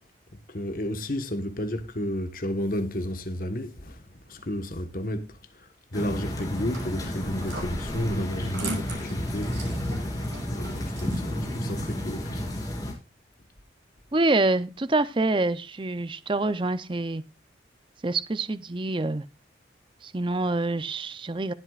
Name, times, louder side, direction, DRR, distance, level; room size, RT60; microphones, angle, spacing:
voice 1, 0.5-4.0 4.3-5.3 5.6-9.6 10.5-12.5, left 1 dB, 50° left, 1.3 m, -32 dB
sound 1, 5.9-12.9, left 1 dB, 20° left, 3.1 m, -32 dB
sound 2, 6.4-11.5, right 2 dB, 85° right, 5.0 m, -41 dB
voice 2, 14.1-17.2 18.0-19.3 20.0-21.5, right 2 dB, 25° right, 0.5 m, -26 dB
20.0 x 8.0 x 2.4 m
head